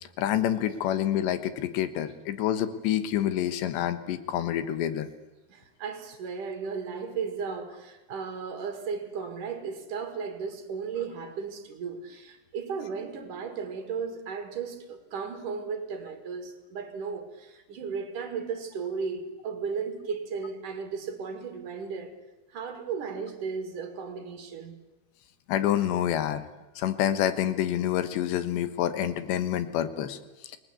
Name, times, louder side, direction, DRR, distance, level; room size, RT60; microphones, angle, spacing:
voice 1, 0.2-5.1 25.5-26.5 26.8-30.2, left 11 dB, 85° left, 3.5 m, -27 dB
voice 2, 5.5-22.2 22.5-24.8, right 5 dB, 55° right, 3.4 m, -35 dB
28.5 x 19.5 x 8.3 m
omnidirectional pair, 4.9 m